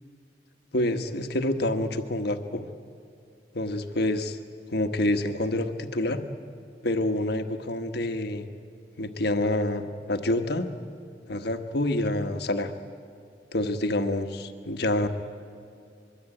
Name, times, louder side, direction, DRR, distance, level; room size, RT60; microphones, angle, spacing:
voice 1, 0.7-2.7 3.5-4.4 4.7-6.2 6.8-8.5 9.0-10.7 11.3-12.7 13.5-15.1, left 1 dB, 65° left, 7 dB, 1.3 m, -27 dB
24.0 x 23.0 x 9.0 m, 2.4 s
head